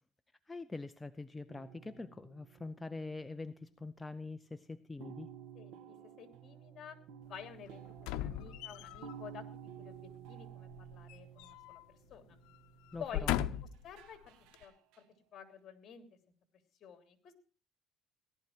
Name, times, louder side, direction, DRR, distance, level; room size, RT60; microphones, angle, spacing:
voice 1, 0.5-5.3 12.9-13.4, left 3 dB, 15° left, 10 dB, 0.6 m, -44 dB
sound 1, 1.5-4.0 4.3-4.6 5.0-13.5 14.0-15.0, right 9 dB, 90° right, 1.6 m, -53 dB
voice 2, 5.5-7.0 7.2-9.5 9.8-12.2 13.0-13.3 13.8-14.3 14.6-15.0 15.3-16.0 16.8-17.3, left 8 dB, 50° left, 7 dB, 3.2 m, -50 dB
sound 2, 8.0-9.1 10.7-11.8 12.1-12.3 12.9-13.9 14.5-14.6, left 13 dB, 85° left, 0.8 m, -37 dB
17.5 x 12.0 x 4.5 m, 0.37 s
cardioid pair, 115°, 0 cm